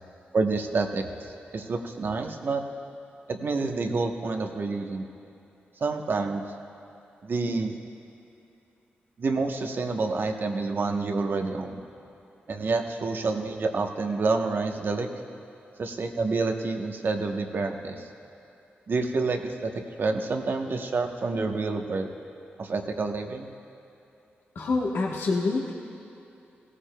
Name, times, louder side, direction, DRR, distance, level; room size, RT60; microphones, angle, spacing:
voice 1, 0.3-2.6 3.3-5.1 5.8-6.4 7.2-7.7 9.2-11.8 12.5-15.1 15.8-18.1 18.9-22.1 22.6-23.5, right 3 dB, 55° right, 4 dB, 0.9 m, -28 dB
voice 2, 24.5-25.7, left 3 dB, 75° left, -3 dB, 1.1 m, -26 dB
17.5 x 15.0 x 2.2 m, 2.8 s
cardioid pair, 65°, 4 cm